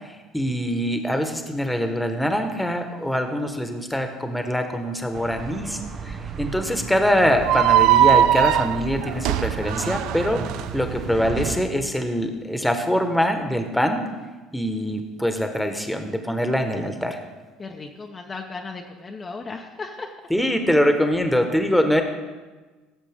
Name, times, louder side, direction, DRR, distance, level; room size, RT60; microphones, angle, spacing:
voice 1, 0.3-5.8 6.0-10.4 10.7-14.0 14.5-17.2 20.3-22.0, equal, 5° left, 6 dB, 1.5 m, -23 dB
sound 1, 5.1-11.6, right 6 dB, 45° right, 1.0 m, -34 dB
sound 2, 7.4-10.6, right 12 dB, 65° right, 0.3 m, -19 dB
voice 2, 17.6-20.2, left 4 dB, 30° left, 1 dB, 1.0 m, -36 dB
16.5 x 7.4 x 3.7 m, 1.3 s
hypercardioid pair, 65°, 0 cm